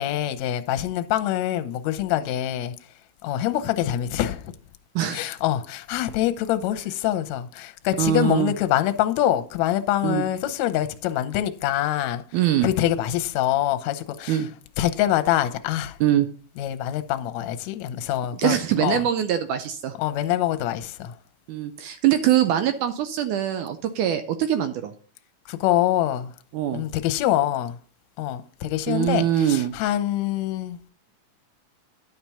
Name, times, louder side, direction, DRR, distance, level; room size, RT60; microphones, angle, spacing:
voice 1, 0.0-2.7 3.2-4.5 5.1-12.2 12.6-14.5 14.8-16.0 16.6-19.0 20.0-21.1 25.5-26.3 26.7-27.8 28.2-30.9, left 12 dB, 70° left, 1.8 m, -25 dB
voice 2, 5.0-5.3 8.0-8.5 10.0-10.3 12.3-12.7 14.3-14.5 16.0-16.3 18.3-19.9 21.5-24.9 26.5-26.8 28.9-29.7, right 11 dB, 75° right, 2.0 m, -23 dB
10.5 x 5.9 x 5.6 m
omnidirectional pair, 3.9 m